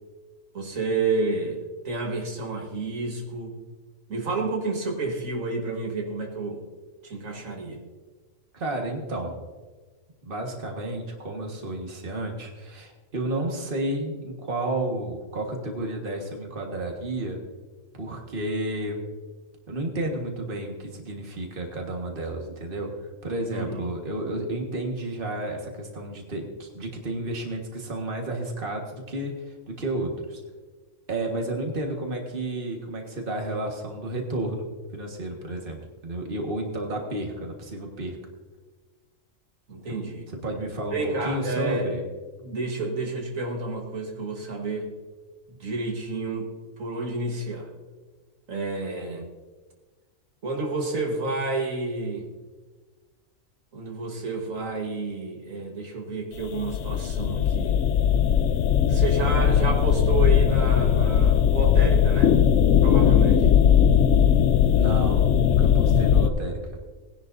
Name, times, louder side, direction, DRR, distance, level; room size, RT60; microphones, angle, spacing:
voice 1, 0.5-3.6 4.1-6.6 7.0-7.8 23.5-23.9 39.7-40.3 40.9-41.9 42.4-44.9 45.5-46.5 46.8-47.7 48.5-49.3 50.4-52.3 53.7-57.8 58.9-62.4 62.8-63.5, right 3 dB, 80° right, 2 dB, 1.9 m, -30 dB
voice 2, 8.5-9.4 10.2-17.4 17.9-19.0 19.7-22.9 23.2-30.4 31.1-34.7 34.9-38.2 40.3-42.0 64.7-66.6, right 1 dB, 40° right, 1 dB, 1.7 m, -31 dB
sound 1, 56.4-66.3, left 8 dB, 70° left, 0.9 m, -19 dB
19.0 x 10.5 x 2.6 m, 1.3 s
omnidirectional pair, 1.4 m